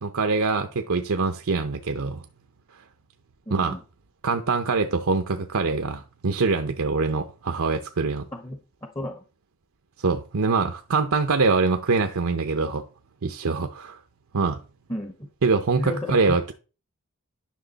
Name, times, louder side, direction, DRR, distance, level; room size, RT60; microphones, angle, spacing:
voice 1, 0.0-2.2 3.5-3.8 4.2-8.3 10.0-12.9 13.2-14.0 14.3-14.6 15.4-16.5, right 4 dB, 70° right, 0.7 m, -24 dB
voice 2, 3.5-3.8 8.3-9.2 14.9-15.3 15.8-16.4, left 1 dB, 15° left, 0.8 m, -32 dB
10.5 x 6.1 x 4.0 m
head